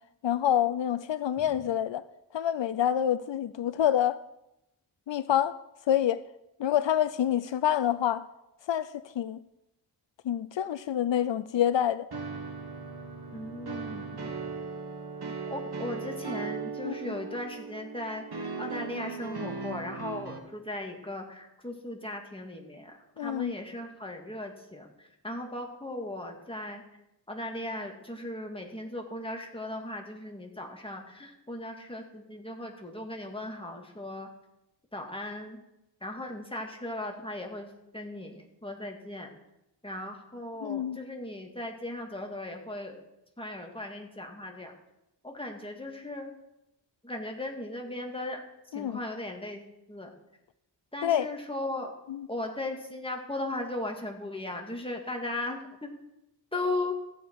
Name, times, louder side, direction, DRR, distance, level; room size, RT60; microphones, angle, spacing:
voice 1, 0.2-2.0 2.3-4.2 5.1-5.6 5.9-6.2 6.6-8.2 8.7-9.4 10.2-12.1 16.8-17.1 23.2-23.5 40.6-41.0 48.7-49.0 51.0-51.3 52.1-52.3, left 10 dB, 85° left, 0.5 m, -27 dB
sound 1, 12.1-20.4, right 4 dB, 60° right, 1.6 m, -38 dB
voice 2, 13.3-14.2 15.5-24.9 25.2-26.8 27.3-34.3 34.9-35.6 36.0-37.7 37.9-39.3 39.8-43.0 43.4-44.7 45.2-46.3 47.0-48.4 48.7-49.6 49.9-50.1 50.9-51.9 52.3-55.9 56.5-56.9, left 1 dB, 10° left, 2.0 m, -37 dB
14.5 x 8.7 x 4.6 m
wide cardioid pair, 70°, 43 cm